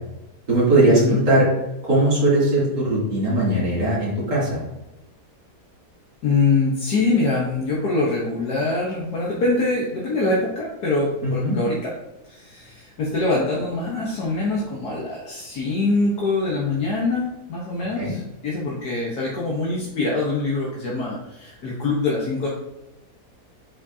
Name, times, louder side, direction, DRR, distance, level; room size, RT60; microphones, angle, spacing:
voice 1, 0.5-1.5 1.8-4.6 11.2-11.6 17.9-18.1, right 1 dB, 85° right, -9 dB, 3.3 m, -19 dB
voice 2, 6.2-11.9 12.2-22.5, left 3 dB, 70° left, -5 dB, 1.7 m, -24 dB
8.4 x 5.1 x 2.8 m, 0.95 s
omnidirectional pair, 1.7 m